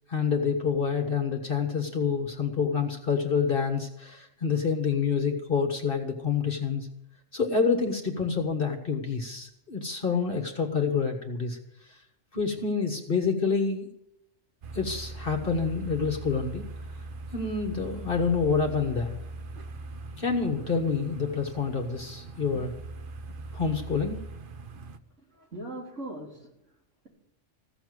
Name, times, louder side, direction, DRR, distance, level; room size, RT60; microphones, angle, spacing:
voice 1, 0.1-6.9 7.3-11.6 11.9-12.0 12.3-13.9 14.7-16.7 17.3-19.2 20.2-22.7 23.5-24.2, left 5 dB, 50° left, 4 dB, 1.6 m, -27 dB
sound 1, 14.6-25.0, right 3 dB, 50° right, 1.0 m, -41 dB
voice 2, 25.1-27.1, right 1 dB, 75° right, -2 dB, 4.4 m, -41 dB
15.5 x 7.0 x 9.6 m, 0.80 s
omnidirectional pair, 1.3 m